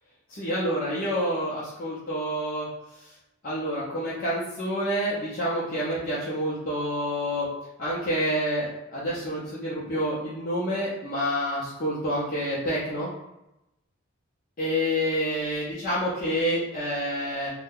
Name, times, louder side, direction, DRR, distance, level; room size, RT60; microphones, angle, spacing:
voice 1, 0.3-2.7 3.4-7.5 7.8-13.1 14.6-17.5, equal, 40° left, -9 dB, 0.7 m, -28 dB
2.7 x 2.2 x 3.6 m, 0.91 s
head